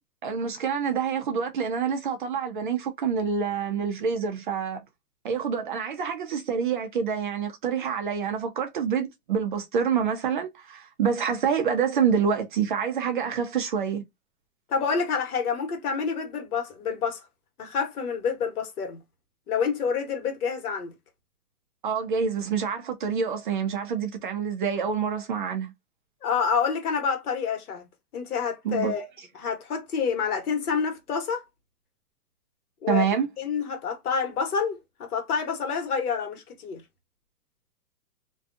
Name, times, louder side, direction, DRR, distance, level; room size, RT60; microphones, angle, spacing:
voice 1, 0.2-4.8 5.2-14.0 21.8-25.7 28.6-28.9 32.9-33.3, right 6 dB, 35° right, 0.4 m, -27 dB
voice 2, 14.7-17.3 17.6-19.0 19.5-20.9 26.2-27.9 28.1-29.1 29.3-31.4 32.8-33.0 33.4-36.8, left 6 dB, 75° left, 1.3 m, -28 dB
2.6 x 2.3 x 2.5 m
hypercardioid pair, 145°, 45 cm